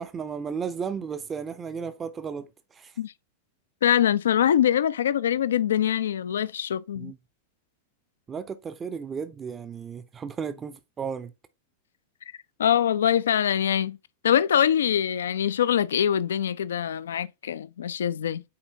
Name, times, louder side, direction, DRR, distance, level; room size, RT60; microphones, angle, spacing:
voice 1, 0.0-2.5 2.7-2.9 7.0-7.2 8.3-11.3, right 6 dB, 20° right, 0.5 m, -34 dB
voice 2, 3.8-7.1 12.6-14.0 14.2-18.4, left 9 dB, 65° left, 0.3 m, -23 dB
8.6 x 4.3 x 2.7 m
figure-of-eight pair, 90°, 0 cm